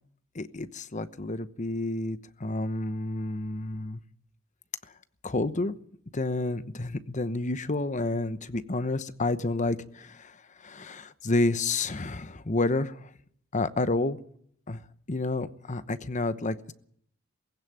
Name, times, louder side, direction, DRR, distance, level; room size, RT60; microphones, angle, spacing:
voice 1, 0.3-4.0 5.2-5.8 6.1-13.1 13.5-14.2 14.7-14.8 15.1-16.7, left 2 dB, 40° left, 13 dB, 1.0 m, -30 dB
19.5 x 16.0 x 8.9 m, 0.66 s
head